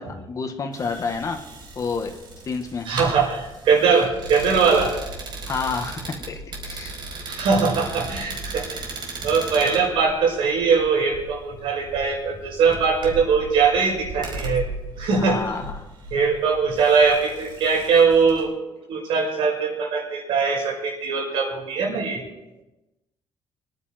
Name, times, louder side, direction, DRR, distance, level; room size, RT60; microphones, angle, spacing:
voice 1, 0.0-1.4 1.8-2.2 2.5-2.9 5.5-6.0 6.3-7.0 15.2-15.9, left 5 dB, 40° left, 5 dB, 1.8 m, -29 dB
sound 1, 0.7-18.4, right 2 dB, 60° right, 4.7 m, -37 dB
voice 2, 2.9-4.9 7.1-8.9 9.2-14.7 15.0-15.4 16.1-18.5 18.9-22.2, right 5 dB, 75° right, 0 dB, 5.5 m, -21 dB
23.5 x 10.5 x 4.6 m, 0.99 s
cardioid pair, 125°, 9 cm